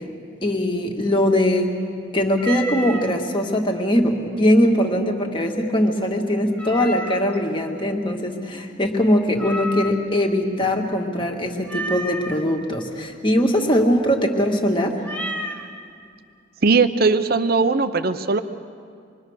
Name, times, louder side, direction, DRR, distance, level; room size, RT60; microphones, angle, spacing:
voice 1, 0.4-1.7 2.1-15.0, equal, 25° left, 2 dB, 1.9 m, -21 dB
Meow, 2.4-3.1 6.6-7.4 9.4-10.2 11.7-12.4 15.0-15.7, right 1 dB, 5° left, 1.3 m, -31 dB
voice 2, 16.6-18.4, right 4 dB, 50° right, 11 dB, 0.7 m, -19 dB
26.5 x 22.5 x 6.5 m, 2.3 s
head